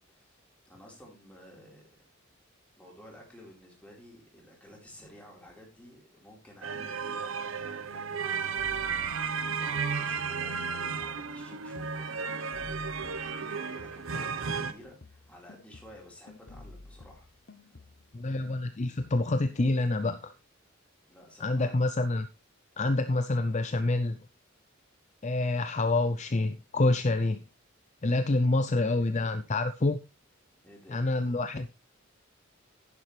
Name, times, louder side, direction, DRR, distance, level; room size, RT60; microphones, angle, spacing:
voice 1, 0.1-1.9 2.8-17.3 17.6-17.7 21.1-21.8 28.7-29.4 30.6-31.5, equal, 5° left, -2 dB, 4.4 m, -53 dB
sound 1, 6.6-14.7, right 5 dB, 80° right, 1.0 m, -33 dB
sound 2, 8.6-14.2 14.5-18.2 18.5-19.6, left 2 dB, 55° left, 1.0 m, -52 dB
voice 2, 18.1-20.3 21.4-22.3 22.8-24.2 25.2-27.4 28.0-30.0 30.9-31.7, left 2 dB, 35° left, 9 dB, 0.6 m, -27 dB
11.0 x 10.0 x 3.3 m, 0.28 s
head